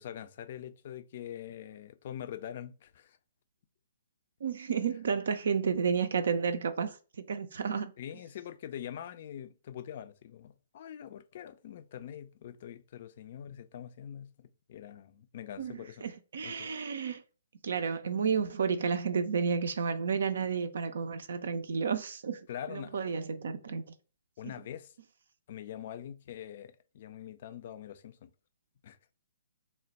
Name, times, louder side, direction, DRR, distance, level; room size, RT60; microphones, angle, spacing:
voice 1, 0.0-3.2 8.0-16.0 16.4-16.7 22.5-23.1 24.4-24.9 25.5-28.3 28.8-29.0, left 10 dB, 45° left, 0.4 m, -44 dB
voice 2, 4.4-7.0 7.3-7.9 15.6-15.7 16.0-17.2 17.6-23.8, right 6 dB, 60° right, 0.4 m, -31 dB
3.4 x 2.1 x 3.9 m
figure-of-eight pair, 125°, 0 cm